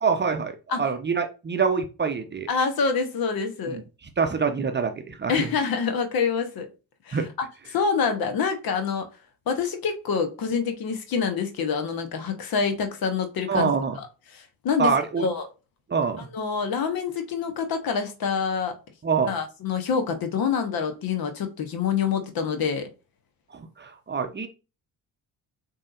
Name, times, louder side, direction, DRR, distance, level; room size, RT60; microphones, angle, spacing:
voice 1, 0.0-2.5 3.7-3.8 4.2-5.5 7.1-7.3 13.5-14.0 14.8-15.3 15.9-16.3 19.0-19.3 23.5-24.5, right 5 dB, 25° right, 0.8 m, -25 dB
voice 2, 2.5-3.8 5.3-6.7 7.1-9.1 9.5-13.7 14.0-15.5 16.2-18.8 19.2-22.9, left 6 dB, 50° left, 1.0 m, -26 dB
7.3 x 2.8 x 2.5 m
figure-of-eight pair, 40°, 47 cm